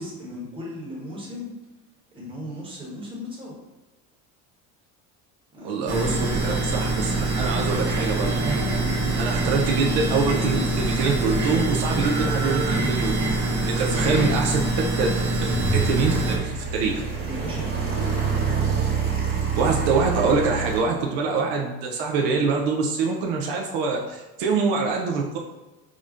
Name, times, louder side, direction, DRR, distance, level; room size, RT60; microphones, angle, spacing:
voice 1, 0.0-1.5 2.1-3.6 5.5-6.4 8.8-9.3 13.7-14.0 17.3-18.2, left 1 dB, 15° right, -4 dB, 1.1 m, -37 dB
voice 2, 5.6-8.4 9.2-13.1 13.6-14.6 15.0-15.1 15.4-17.0 19.6-25.4, right 4 dB, 75° right, 0 dB, 0.6 m, -25 dB
sound 1, 5.9-16.4, right 2 dB, 45° right, 1.2 m, -24 dB
sound 2, 12.0-20.8, right 6 dB, 30° right, 1.5 m, -29 dB
sound 3, 15.1-18.2, right 2 dB, 65° left, 0.6 m, -31 dB
4.8 x 2.1 x 2.5 m, 1.1 s
cardioid pair, 115°, 36 cm